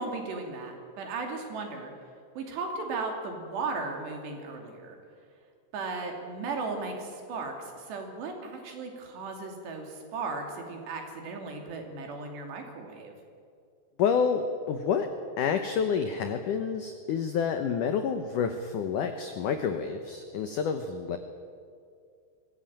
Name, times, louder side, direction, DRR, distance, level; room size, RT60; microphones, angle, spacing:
voice 1, 0.0-1.9 2.4-5.0 5.7-13.1, right 3 dB, 70° right, 3 dB, 4.8 m, -36 dB
voice 2, 14.0-15.1 15.4-21.2, left 6 dB, 85° left, 7 dB, 1.8 m, -28 dB
23.5 x 16.0 x 8.9 m, 2.3 s
omnidirectional pair, 5.2 m